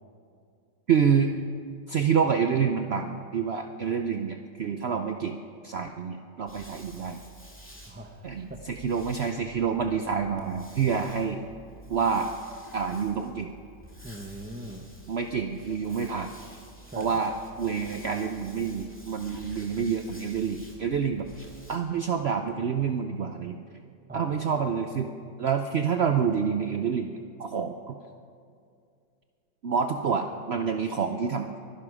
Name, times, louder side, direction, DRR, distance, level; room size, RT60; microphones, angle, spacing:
voice 1, 0.9-1.3 1.9-5.4 5.6-7.2 8.2-11.4 11.9-12.3 12.7-13.5 15.1-16.3 17.0-21.3 21.7-23.6 24.1-25.1 25.4-27.1 27.4-28.0 29.6-31.5, right 6 dB, 80° right, 6 dB, 0.5 m, -27 dB
sound 1, 6.5-21.8, right 1 dB, 5° left, 2.1 m, -49 dB
voice 2, 7.8-8.6 14.0-14.9 16.8-17.2 24.1-24.6, right 1 dB, 10° right, 5 dB, 0.6 m, -42 dB
23.5 x 11.5 x 4.9 m, 2.3 s
omnidirectional pair, 1.9 m